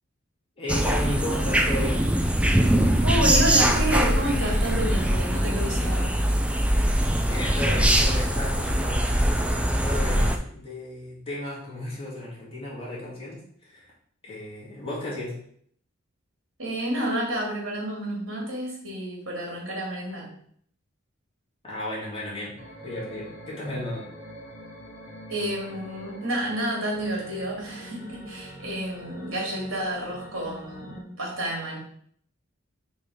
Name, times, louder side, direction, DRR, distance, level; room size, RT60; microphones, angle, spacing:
voice 1, 0.6-2.1 7.3-13.9 14.2-15.4 21.6-22.6 22.8-24.1, left 1 dB, 25° left, -5 dB, 2.3 m, -34 dB
sound 1, 0.7-10.4, right 1 dB, 5° right, 0.4 m, -22 dB
voice 2, 3.0-6.1 16.6-20.3 25.3-31.8, right 1 dB, 75° right, -3 dB, 2.8 m, -30 dB
sound 2, 22.6-31.0, equal, 65° left, 2.1 m, -44 dB
4.6 x 4.4 x 5.0 m, 0.63 s
head